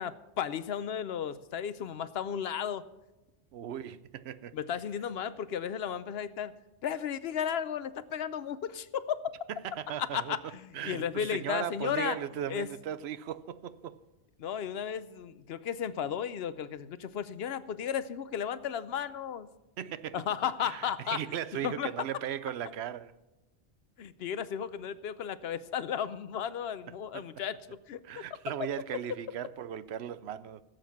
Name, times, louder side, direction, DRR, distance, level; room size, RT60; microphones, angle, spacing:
voice 1, 0.0-2.8 4.5-6.5 6.8-9.3 10.0-12.2 12.5-12.7 14.4-19.5 20.1-21.2 21.6-21.9 24.0-27.6 27.9-28.0, left 8 dB, 70° left, 0.9 m, -34 dB
voice 2, 3.5-4.6 9.5-10.4 10.7-14.0 19.8-20.2 20.6-23.1 27.1-27.3 28.0-30.6, right 10 dB, 75° right, 0.9 m, -37 dB
16.5 x 7.8 x 5.8 m
omnidirectional pair, 1.1 m